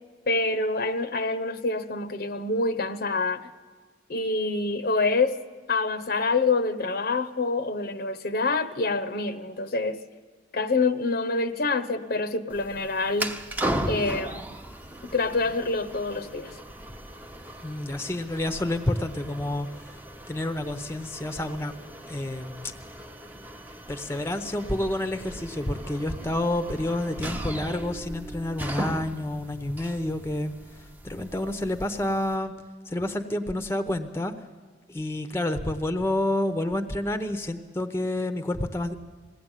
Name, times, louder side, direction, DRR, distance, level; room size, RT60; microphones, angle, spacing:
voice 1, 0.3-3.5 4.1-5.4 5.7-10.0 10.5-13.3 13.9-14.4 15.1-16.5, left 3 dB, 55° left, 9 dB, 0.9 m, -26 dB
sound 1, 12.5-32.4, right 1 dB, 10° right, 0.9 m, -37 dB
voice 2, 17.6-19.7 20.3-21.7 22.1-22.7 23.9-30.5 31.0-32.5 32.9-34.3 34.9-38.9, left 1 dB, 15° left, 8 dB, 0.9 m, -29 dB
20.5 x 16.5 x 9.0 m, 1.5 s
head